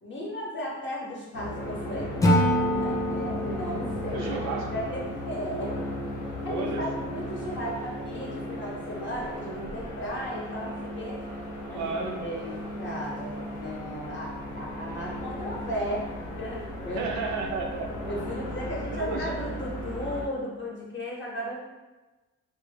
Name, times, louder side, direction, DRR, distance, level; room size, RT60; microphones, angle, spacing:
voice 1, 0.0-5.7 6.4-11.2 11.7-16.1 16.4-17.1 18.0-21.6, equal, 40° left, -3 dB, 0.8 m, -35 dB
sound 1, 1.3-20.3, left 1 dB, 90° left, 0.6 m, -36 dB
Acoustic guitar / Strum, 2.2-5.4, equal, 10° left, 0.3 m, -27 dB
voice 2, 4.1-4.7 6.5-7.1 11.7-12.2 16.9-18.1 18.9-19.3, right 4 dB, 70° right, 2 dB, 0.5 m, -33 dB
2.1 x 2.0 x 3.2 m, 1.2 s
cardioid pair, 90°, 30 cm